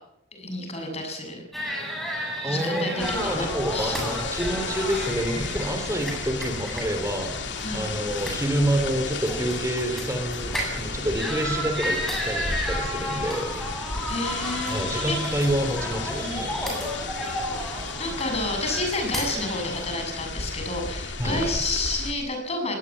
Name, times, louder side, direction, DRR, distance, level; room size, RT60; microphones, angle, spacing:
voice 1, 0.3-1.4 2.4-4.0 7.6-7.8 14.1-15.4 16.2-16.5 17.6-22.8, left 2 dB, 35° left, 3 dB, 7.2 m, -30 dB
sound 1, 1.5-19.9, equal, ahead, 7.8 m, -33 dB
voice 2, 2.4-7.3 7.7-13.6 14.7-16.5 21.2-21.5, right 1 dB, 15° right, 6 dB, 3.0 m, -28 dB
sound 2, 3.0-22.1, left 4 dB, 75° left, 2.5 m, -34 dB
21.0 x 19.0 x 8.6 m, 0.82 s
head